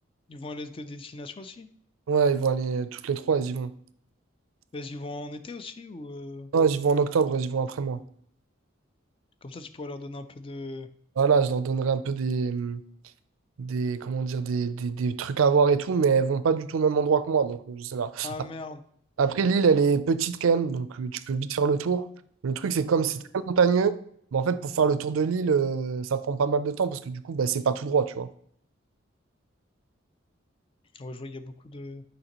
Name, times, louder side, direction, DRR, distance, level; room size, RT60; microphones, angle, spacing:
voice 1, 0.3-1.7 4.7-6.5 9.4-10.9 18.2-18.8 23.0-23.1 30.9-32.0, left 2 dB, 25° left, 0.3 m, -39 dB
voice 2, 2.1-3.7 6.5-8.0 11.2-12.8 13.6-18.3 19.2-22.1 22.4-24.0 24.3-28.3, right 5 dB, 85° right, 0.4 m, -24 dB
6.5 x 5.1 x 2.9 m
head